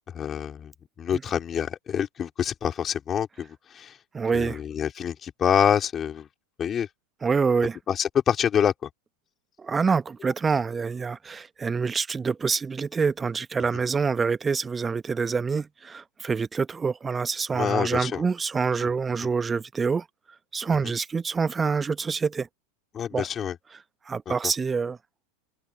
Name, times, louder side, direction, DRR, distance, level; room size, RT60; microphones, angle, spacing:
voice 1, 0.1-0.7 1.0-3.9 4.3-6.3 6.6-6.9 7.9-8.9 17.5-18.2 22.9-23.5 24.3-24.4, left 8 dB, 25° left, 4.6 m, -26 dB
voice 2, 4.1-4.6 7.2-7.8 9.6-20.0 20.5-22.5 23.1-23.3 24.0-25.0, right 5 dB, 15° right, 1.4 m, -26 dB
figure-of-eight pair, 90°, 0 cm